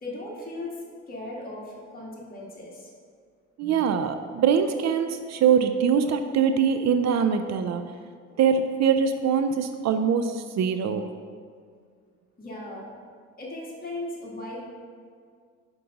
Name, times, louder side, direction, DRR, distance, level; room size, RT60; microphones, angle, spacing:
voice 1, 0.0-0.8 1.1-2.9 12.4-12.9 13.4-14.6, left 2 dB, 30° left, -5 dB, 1.7 m, -37 dB
voice 2, 3.6-7.8 8.4-11.1, right 7 dB, 60° right, 8 dB, 0.5 m, -23 dB
5.8 x 5.2 x 5.1 m, 2.1 s
cardioid pair, 90°, 30 cm